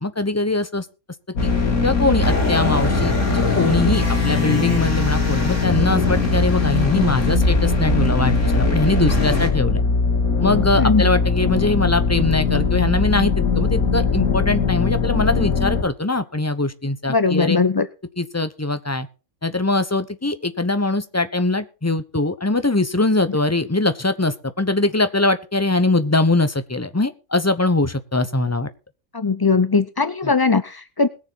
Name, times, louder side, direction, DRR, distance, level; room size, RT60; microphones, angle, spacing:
voice 1, 0.0-0.9 1.4-1.5 1.8-9.8 10.4-17.6 18.2-19.1 19.4-28.7 30.2-30.3, left 2 dB, 15° left, 10 dB, 0.8 m, -22 dB
sound 1, 1.4-15.8, left 5 dB, 85° left, 2.1 m, -21 dB
sound 2, 1.4-9.5, equal, 55° left, 3.4 m, -24 dB
voice 2, 17.1-17.9 29.1-31.1, left 4 dB, 40° left, 13 dB, 0.3 m, -19 dB
21.0 x 7.1 x 4.1 m, 0.31 s
omnidirectional pair, 1.5 m